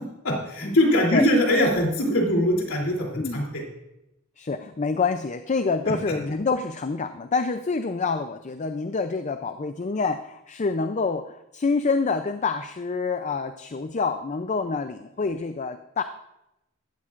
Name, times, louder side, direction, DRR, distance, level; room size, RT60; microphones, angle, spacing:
voice 1, 0.2-3.6, left 1 dB, 75° left, -1 dB, 3.1 m, -22 dB
voice 2, 3.1-3.5 4.4-16.0, left 4 dB, 35° left, 9 dB, 0.5 m, -27 dB
16.0 x 13.0 x 2.5 m, 0.88 s
head